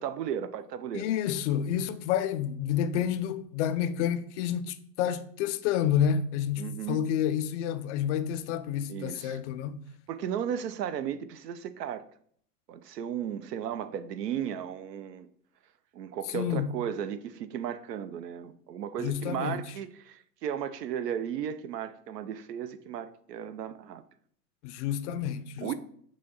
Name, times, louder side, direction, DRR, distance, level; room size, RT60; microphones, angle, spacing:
voice 1, 0.0-1.1 6.6-7.0 8.9-9.4 10.1-12.0 12.7-15.3 15.9-24.0 25.6-25.7, right 9 dB, 75° right, 0.7 m, -35 dB
voice 2, 0.9-9.8 16.3-16.7 19.0-19.6 24.6-25.7, left 9 dB, 50° left, 0.5 m, -29 dB
6.2 x 2.8 x 5.6 m
hypercardioid pair, 95°, 49 cm